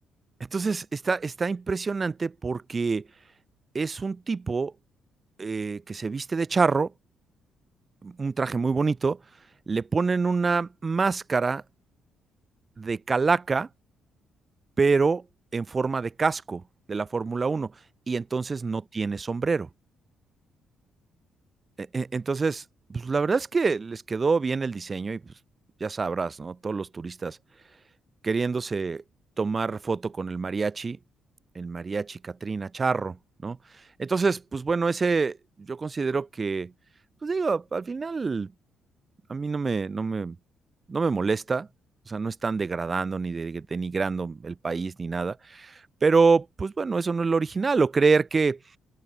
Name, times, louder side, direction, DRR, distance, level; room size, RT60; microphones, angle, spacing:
voice 1, 0.5-3.0 3.7-4.7 5.4-6.9 8.0-9.2 9.7-11.6 12.8-13.7 14.8-15.2 15.5-16.6 16.9-17.7 18.1-19.7 21.8-22.6 22.9-25.2 25.8-27.4 28.2-29.0 29.4-31.0 31.6-33.2 33.4-33.6 34.0-36.7 37.2-38.5 39.3-40.4 40.9-41.7 42.1-48.6, right 4 dB, 30° right, 0.4 m, -26 dB
open air
cardioid pair, 90°, 0 cm